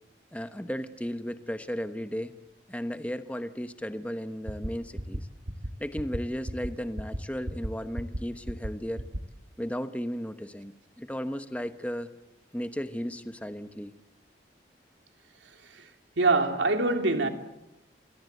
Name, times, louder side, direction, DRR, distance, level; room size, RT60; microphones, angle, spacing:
voice 1, 0.3-2.3 2.7-5.3 5.8-9.1 9.6-12.1 12.5-13.9, equal, 10° left, 1.1 m, -35 dB
sound 1, 4.5-4.7 5.0-5.2 5.5-5.7 6.0-6.2 6.5-6.7 7.0-7.2 7.5-7.7 8.0-8.2 8.5-8.7 9.0-9.2, equal, 60° right, 1.8 m, -33 dB
voice 2, 16.2-17.3, right 3 dB, 90° right, 3.0 m, -23 dB
28.0 x 22.5 x 8.1 m
head